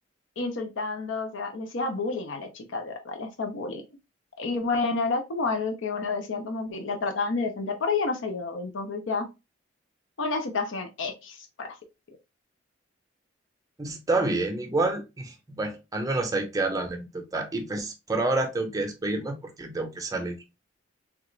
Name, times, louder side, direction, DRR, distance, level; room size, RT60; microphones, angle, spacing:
voice 1, 0.4-3.8 4.4-9.3 10.2-11.8, left 3 dB, 70° left, 6 dB, 0.6 m, -30 dB
voice 2, 13.8-20.4, right 2 dB, 20° right, 4 dB, 0.6 m, -28 dB
3.4 x 2.4 x 3.0 m, 0.25 s
head